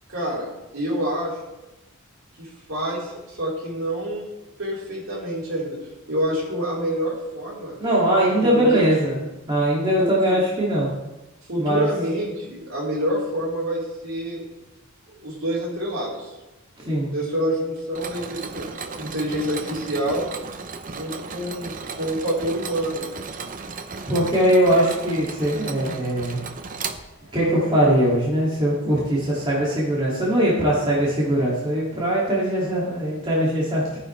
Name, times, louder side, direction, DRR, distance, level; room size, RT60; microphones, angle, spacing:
voice 1, 0.1-0.5 0.7-1.4 2.4-4.3 4.6-5.8 6.1-7.8 8.4-9.1 10.0-10.4 11.5-14.4 15.1-16.3 17.1-20.3 20.8-23.1, right 1 dB, 65° right, -5 dB, 4.1 m, -27 dB
voice 2, 7.8-10.9 11.6-11.9 16.8-17.1 24.1-26.4 27.3-34.0, right 1 dB, 25° right, -7 dB, 2.4 m, -21 dB
Mechanisms, 17.9-27.5, right 4 dB, 40° right, 0.7 m, -35 dB
15.0 x 9.5 x 3.3 m, 1.0 s
head